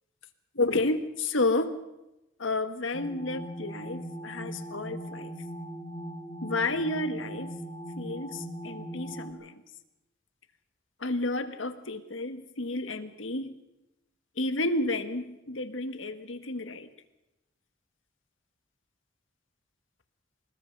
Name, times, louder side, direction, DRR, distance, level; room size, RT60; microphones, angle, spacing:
voice 1, 0.5-1.8 2.4-5.3 6.4-7.5 8.0-9.6 11.0-13.5 14.4-16.9, left 2 dB, 85° left, 9 dB, 1.6 m, -31 dB
sound 1, 2.9-9.3, equal, 40° left, 5.7 m, -39 dB
26.0 x 20.5 x 5.5 m, 0.93 s
head